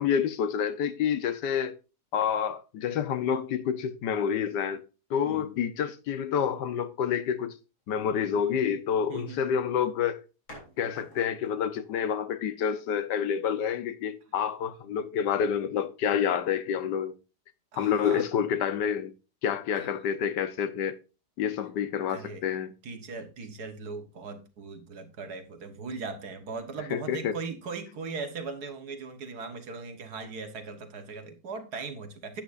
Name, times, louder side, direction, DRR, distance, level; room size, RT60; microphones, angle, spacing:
voice 1, 0.0-1.7 2.1-4.8 5.1-7.5 7.9-10.2 10.8-17.1 17.8-19.1 19.4-21.0 21.4-22.7 26.9-27.4, left 8 dB, 80° left, 1.5 m, -28 dB
sound 1, 9.0-9.3 10.5-11.6, equal, 65° left, 4.1 m, -49 dB
voice 2, 9.1-9.4 17.7-18.3 19.7-19.9 22.1-22.4 22.8-32.4, right 4 dB, 65° right, 1.8 m, -39 dB
11.0 x 9.0 x 2.5 m
omnidirectional pair, 1.8 m